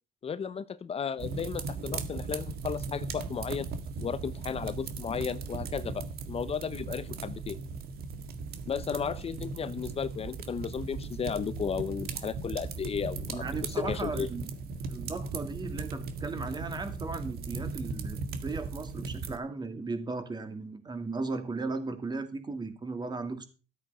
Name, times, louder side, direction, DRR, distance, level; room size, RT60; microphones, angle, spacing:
voice 1, 0.2-3.7 4.0-7.6 8.7-14.3, left 6 dB, 35° left, 0.9 m, -34 dB
sound 1, 1.2-19.4, right 4 dB, 65° right, 1.9 m, -38 dB
voice 2, 13.3-14.5 14.9-23.5, right 3 dB, 25° right, 2.6 m, -36 dB
13.5 x 8.3 x 5.5 m
cardioid pair, 110°, 17 cm